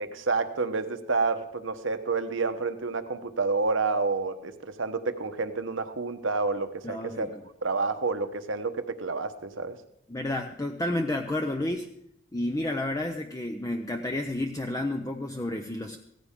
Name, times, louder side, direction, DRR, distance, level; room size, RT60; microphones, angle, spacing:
voice 1, 0.0-7.3 7.6-9.8, right 4 dB, 70° right, 9 dB, 1.0 m, -29 dB
voice 2, 6.8-7.3 10.1-11.9 12.3-16.0, left 1 dB, 15° left, 4 dB, 0.6 m, -31 dB
16.5 x 14.5 x 3.7 m, 0.75 s
head